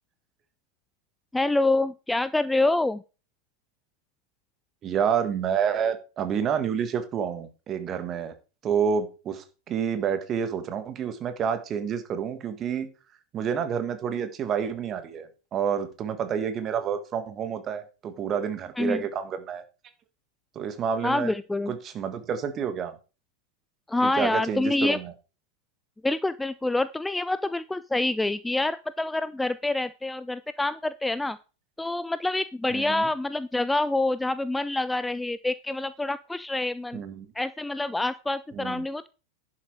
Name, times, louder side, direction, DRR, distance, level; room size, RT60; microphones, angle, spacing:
voice 1, 1.3-3.0 18.8-19.0 21.0-21.7 23.9-25.0 26.0-31.4 31.8-37.0 37.4-39.1, left 2 dB, 5° left, 15 dB, 0.4 m, -26 dB
voice 2, 4.8-8.3 8.6-12.9 13.3-19.6 20.6-21.3 21.7-22.9 24.0-25.1 32.7-33.1 36.9-37.3 38.5-38.9, right 7 dB, 30° right, 10 dB, 1.8 m, -29 dB
11.0 x 7.7 x 4.7 m, 0.33 s
figure-of-eight pair, 90°, 0 cm